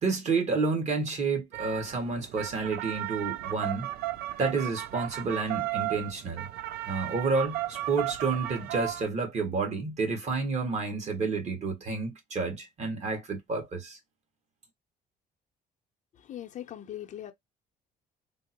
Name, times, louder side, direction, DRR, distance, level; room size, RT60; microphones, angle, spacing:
voice 1, 0.0-3.9 4.4-6.5 6.9-14.0, right 4 dB, 40° right, 1.4 m, -30 dB
sound 1, 1.5-9.1, right 15 dB, 70° right, 0.4 m, -35 dB
voice 2, 16.2-17.3, left 11 dB, 45° left, 0.6 m, -40 dB
3.6 x 2.0 x 2.8 m
cardioid pair, 110°, 17 cm